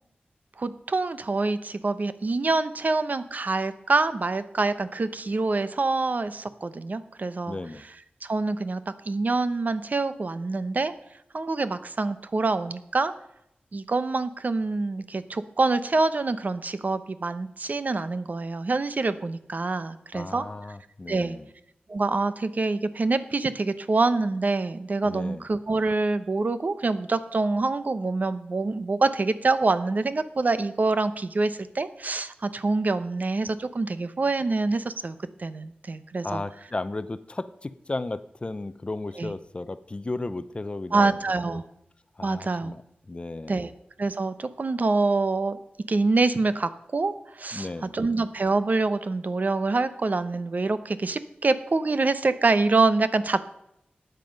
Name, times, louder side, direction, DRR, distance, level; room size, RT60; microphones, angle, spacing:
voice 1, 0.6-7.6 8.2-8.8 9.1-10.9 11.3-13.1 13.7-20.4 21.1-21.4 21.9-36.4 39.2-39.3 40.9-41.6 42.2-42.7 43.5-43.7 44.0-45.6 45.9-47.7 47.9-53.4, right 3 dB, 50° right, 12 dB, 0.8 m, -26 dB
voice 2, 7.5-7.8 20.1-21.5 25.0-25.5 36.2-41.2 41.5-41.6 42.2-42.8 43.1-43.7 47.5-48.0, left 2 dB, 30° left, 14 dB, 0.6 m, -34 dB
13.0 x 9.1 x 5.2 m, 0.80 s
wide cardioid pair, 90°, 4 cm